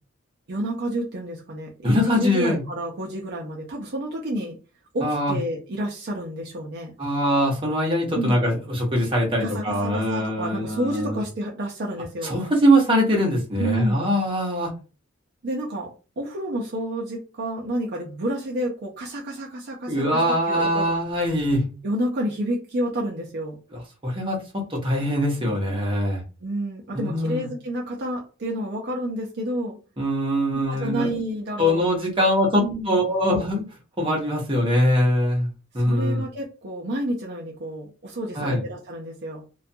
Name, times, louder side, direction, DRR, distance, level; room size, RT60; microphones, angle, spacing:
voice 1, 0.5-4.5 4.9-6.9 8.1-8.4 9.3-12.4 13.6-14.1 15.4-20.9 21.8-23.6 26.4-29.8 30.5-31.8 32.2-32.3 32.6-33.0 35.7-39.4, right 1 dB, 50° right, -2 dB, 0.5 m, -30 dB
voice 2, 1.8-2.6 5.0-5.4 7.0-11.2 12.2-14.7 19.9-21.7 23.7-26.2 26.9-27.5 30.0-31.2 31.6-33.7 34.0-35.5 35.7-36.2 38.3-38.6, equal, 25° right, -2 dB, 0.8 m, -22 dB
2.3 x 2.2 x 2.6 m, 0.33 s
head